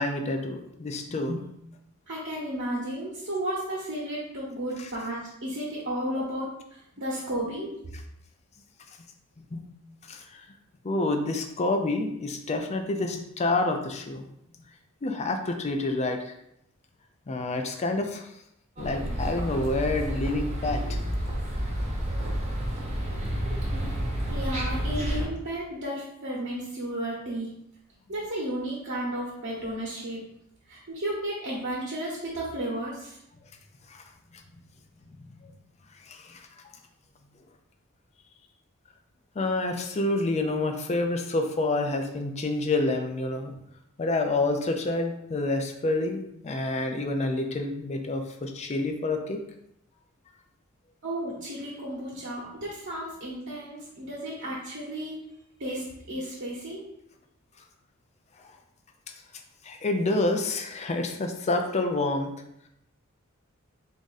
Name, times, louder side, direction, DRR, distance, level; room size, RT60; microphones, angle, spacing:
voice 1, 0.0-1.5 9.4-9.7 10.1-10.5 10.8-14.2 15.0-16.3 17.3-18.3 18.8-21.1 33.9-34.0 34.3-34.4 35.1-35.5 36.1-36.5 39.4-43.5 44.0-49.4 59.6-62.3, left 2 dB, 30° left, 5 dB, 0.4 m, -28 dB
voice 2, 2.1-7.7 24.3-27.5 28.1-30.2 30.7-33.2 51.0-55.2 55.6-56.8, right 1 dB, 60° right, -5 dB, 0.9 m, -33 dB
sound 1, 18.8-25.3, equal, 30° right, 0.8 m, -30 dB
3.5 x 2.5 x 4.0 m, 0.78 s
head